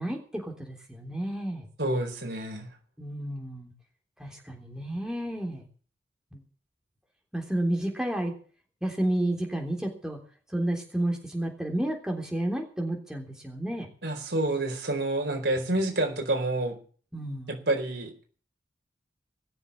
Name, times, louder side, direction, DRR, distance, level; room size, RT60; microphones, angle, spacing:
voice 1, 0.0-1.7 3.0-3.7 4.2-5.6 6.3-6.4 7.3-8.3 8.8-10.2 10.5-13.9 17.1-17.6, right 1 dB, 5° right, 1 dB, 3.4 m, -31 dB
voice 2, 1.8-2.7 14.0-16.8 17.5-18.1, right 2 dB, 70° right, 3 dB, 4.5 m, -28 dB
20.0 x 7.2 x 8.5 m, 0.42 s
head